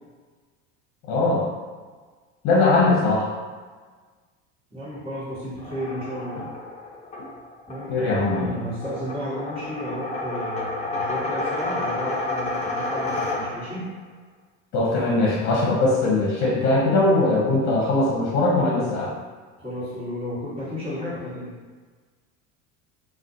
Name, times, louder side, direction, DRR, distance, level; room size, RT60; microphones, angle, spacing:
voice 1, 1.1-1.4 2.4-3.3 7.9-8.5 14.7-19.1, left 2 dB, 55° left, -4 dB, 0.8 m, -20 dB
voice 2, 4.7-6.5 7.7-13.9 19.6-21.5, equal, 15° right, -10 dB, 1.3 m, -33 dB
sound 1, 5.5-13.9, left 2 dB, 20° left, 0.5 m, -30 dB
2.4 x 2.2 x 2.6 m, 1.4 s
supercardioid pair, 95°, 34 cm